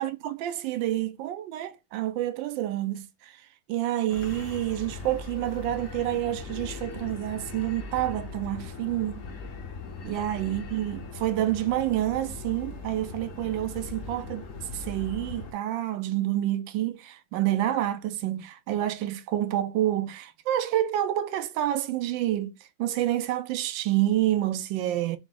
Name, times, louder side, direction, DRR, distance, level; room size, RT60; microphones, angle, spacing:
voice 1, 0.0-3.1 3.7-9.2 10.0-14.5 14.7-22.5 22.8-25.2, right 13 dB, 90° right, 1.3 m, -28 dB
sound 1, 4.1-15.5, left 4 dB, 55° left, 1.0 m, -39 dB
4.7 x 2.0 x 3.7 m
omnidirectional pair, 2.0 m